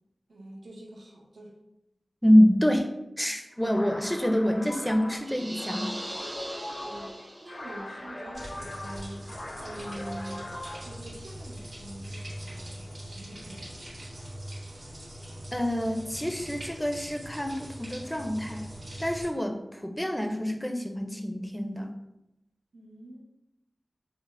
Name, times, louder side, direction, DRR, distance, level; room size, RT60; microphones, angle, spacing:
voice 1, 0.3-1.5 6.8-10.5 10.8-13.8 22.7-23.2, right 1 dB, 85° right, -2 dB, 0.7 m, -44 dB
voice 2, 2.2-2.9 3.2-5.9 15.5-18.7 19.0-21.9, equal, 5° left, 4 dB, 0.4 m, -26 dB
sound 1, 3.6-11.0, left 1 dB, 90° left, 0.7 m, -40 dB
sound 2, 5.2-7.8, right 1 dB, 45° right, 0.9 m, -40 dB
sound 3, 8.3-19.3, equal, 70° right, 1.3 m, -42 dB
6.0 x 2.0 x 2.4 m, 0.90 s
wide cardioid pair, 70°, 0 cm